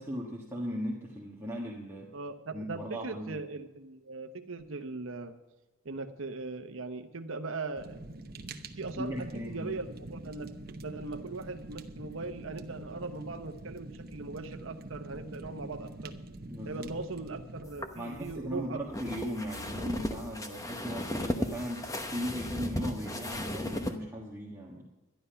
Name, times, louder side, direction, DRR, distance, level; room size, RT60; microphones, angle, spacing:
voice 1, 0.0-2.1 2.5-3.4 9.0-9.7 16.5-16.9 17.9-24.9, equal, 10° right, -4 dB, 1.4 m, -38 dB
voice 2, 2.1-5.3 5.8-8.0 8.8-16.1 16.6-18.8, right 3 dB, 70° right, 7 dB, 0.9 m, -39 dB
Fire, 7.8-17.6, right 2 dB, 45° right, 0.9 m, -45 dB
sound 1, 17.6-24.0, left 1 dB, 15° left, 0.9 m, -36 dB
12.0 x 11.0 x 5.7 m, 1.1 s
head